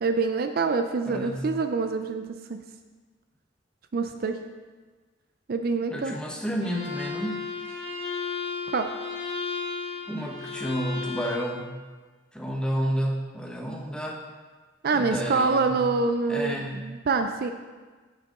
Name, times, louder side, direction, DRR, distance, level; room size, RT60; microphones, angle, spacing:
voice 1, 0.0-2.2 2.5-2.6 3.9-4.4 5.5-6.1 8.7-8.9 14.8-17.5, right 4 dB, 50° right, 7 dB, 0.4 m, -26 dB
voice 2, 1.1-1.5 5.9-7.8 10.1-11.7 12.3-14.2 14.9-15.8 16.3-16.8, equal, 5° left, 0 dB, 0.8 m, -31 dB
Bowed string instrument, 6.6-11.5, left 5 dB, 30° left, 1.6 m, -34 dB
9.1 x 6.4 x 3.7 m, 1.4 s
head